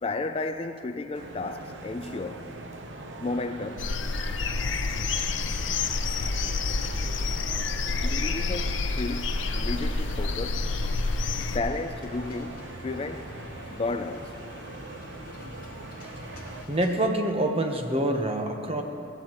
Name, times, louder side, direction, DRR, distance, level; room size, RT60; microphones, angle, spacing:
voice 1, 0.0-2.5 3.2-3.9 8.0-10.7 11.4-13.3 13.7-14.3, left 3 dB, 30° left, 0.3 m, -33 dB
sound 1, 1.1-16.6, right 2 dB, 70° right, 0.8 m, -41 dB
sound 2, 3.8-11.6, left 3 dB, 75° left, 0.6 m, -28 dB
sound 3, 4.8-17.1, left 1 dB, 45° left, 1.2 m, -46 dB
voice 2, 16.7-18.8, right 1 dB, 30° right, 1.0 m, -26 dB
19.5 x 14.0 x 3.0 m
head